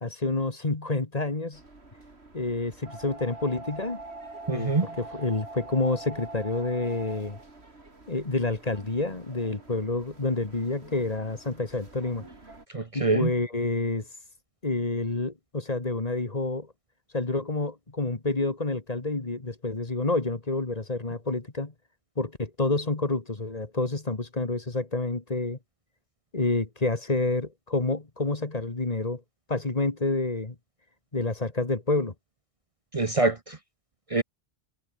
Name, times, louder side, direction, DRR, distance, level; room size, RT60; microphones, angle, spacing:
voice 1, 0.0-1.6 2.3-4.0 4.5-7.4 8.1-12.2 12.9-14.1 14.6-16.7 17.1-21.7 22.2-25.6 26.3-29.2 29.5-30.6 31.1-32.1, left 2 dB, 40° left, 2.0 m, -28 dB
sound 1, 1.5-12.7, right 2 dB, 85° right, 3.9 m, -45 dB
voice 2, 4.5-4.9 12.7-13.3 32.9-33.6 34.1-34.2, right 3 dB, 35° right, 1.1 m, -24 dB
omnidirectional pair, 1.1 m